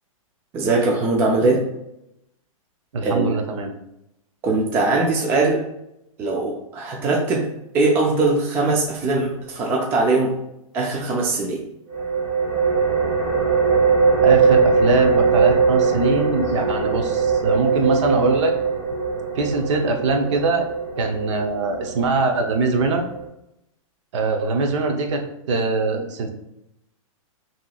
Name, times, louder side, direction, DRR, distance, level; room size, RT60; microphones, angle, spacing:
voice 1, 0.5-1.6 3.0-3.3 4.4-5.6 6.2-10.3 10.7-11.6, right 3 dB, 10° right, -1 dB, 0.3 m, -21 dB
voice 2, 2.9-3.7 14.2-18.5 19.4-20.7 21.0-23.1 24.1-26.3, right 3 dB, 55° right, 4 dB, 0.7 m, -22 dB
sound 1, 11.9-23.3, right 5 dB, 35° right, 1.2 m, -21 dB
5.5 x 2.9 x 2.3 m, 0.83 s
hypercardioid pair, 155°, 18 cm